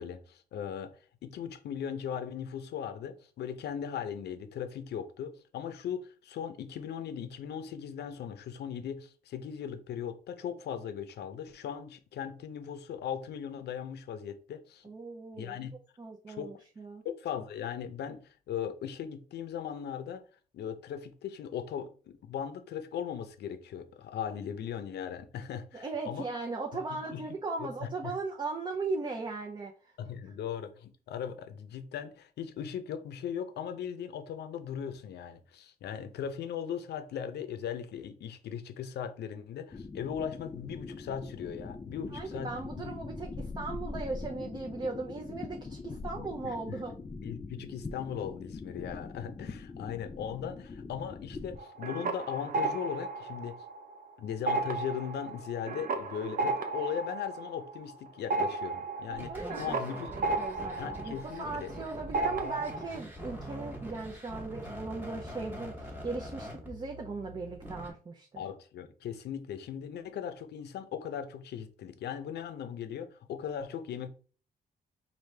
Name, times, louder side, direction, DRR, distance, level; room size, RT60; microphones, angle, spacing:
voice 1, 0.0-14.8 15.4-15.7 16.3-16.6 17.0-20.2 20.5-26.3 26.9-27.2 27.6-28.1 30.0-43.0 46.2-46.8 47.2-53.6 54.2-60.1 60.8-61.7 68.4-74.1, left 8 dB, 80° left, 0.6 m, -38 dB
voice 2, 14.8-15.6 16.0-17.0 25.7-29.9 42.1-46.9 59.1-68.4, right 3 dB, 25° right, 0.6 m, -38 dB
sound 1, 39.7-51.6, left 3 dB, 20° left, 0.3 m, -42 dB
sound 2, 51.6-54.0 54.3-61.8 62.1-63.0, right 3 dB, 55° right, 0.7 m, -34 dB
sound 3, 59.1-67.9, equal, 10° right, 1.1 m, -43 dB
4.9 x 2.6 x 3.2 m
cardioid pair, 135°, 17 cm